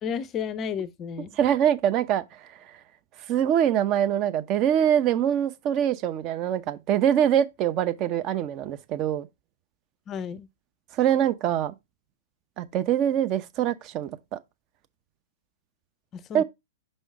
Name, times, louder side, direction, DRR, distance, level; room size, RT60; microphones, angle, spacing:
voice 1, 0.0-1.4 10.1-10.5 16.1-16.4, left 7 dB, 25° left, 0.5 m, -32 dB
voice 2, 1.4-2.2 3.3-9.3 11.0-11.7 12.6-14.4 16.3-16.4, right 10 dB, 35° right, 0.7 m, -24 dB
5.4 x 5.3 x 3.5 m
figure-of-eight pair, 110°, 0 cm